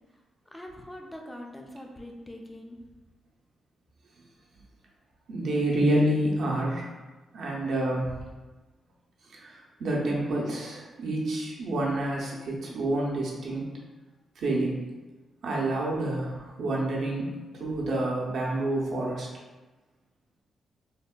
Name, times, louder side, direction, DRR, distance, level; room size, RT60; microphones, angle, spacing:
voice 1, 0.5-2.8, left 1 dB, 10° left, 1 dB, 0.3 m, -43 dB
voice 2, 5.3-6.9 7.3-8.2 9.3-13.7 14.4-14.8 15.4-19.3, right 1 dB, 65° right, -3 dB, 0.6 m, -28 dB
3.3 x 2.1 x 2.3 m, 1.2 s
cardioid pair, 135°, 0 cm